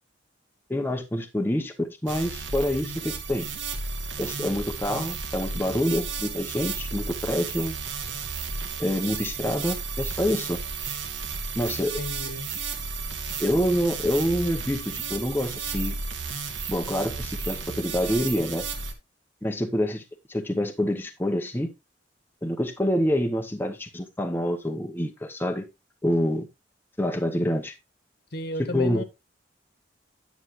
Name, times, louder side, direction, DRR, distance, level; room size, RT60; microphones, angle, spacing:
voice 1, 0.7-3.5 4.2-7.8 8.8-10.6 11.5-12.0 13.4-16.0 16.7-18.6 19.4-20.0 20.3-21.7 22.4-25.7 26.0-26.5 27.0-27.7 28.6-29.0, equal, 10° left, 0.8 m, -27 dB
sound 1, 2.1-18.9, right 4 dB, 85° right, 1.6 m, -33 dB
voice 2, 12.0-12.5 28.3-29.0, left 1 dB, 55° left, 1.3 m, -32 dB
9.7 x 7.1 x 3.0 m
head